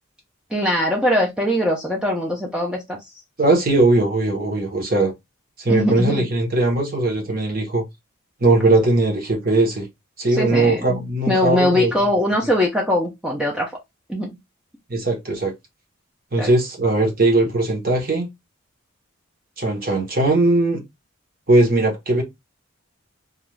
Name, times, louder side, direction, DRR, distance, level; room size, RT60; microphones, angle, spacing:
voice 1, 0.5-3.0 5.7-6.3 10.3-11.0 11.3-13.7 14.1-14.4 16.4-16.5, left 1 dB, 5° right, 0.4 m, -21 dB
voice 2, 3.4-5.1 5.6-7.8 8.4-9.9 10.2-11.9 14.9-15.5 16.3-18.3 19.6-20.8 21.5-22.2, right 2 dB, 45° right, 0.9 m, -19 dB
2.4 x 2.3 x 3.1 m
head